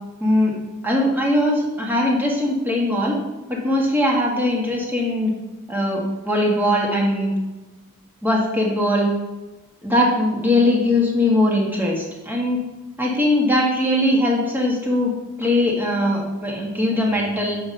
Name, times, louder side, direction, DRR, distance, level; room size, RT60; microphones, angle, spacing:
voice 1, 0.2-0.5 0.8-3.2 3.5-5.3 5.7-7.3 8.2-9.1 9.8-12.6 13.0-15.1 15.4-17.6, left 1 dB, 10° right, -3 dB, 1.7 m, -20 dB
8.5 x 5.8 x 5.5 m, 1.1 s
head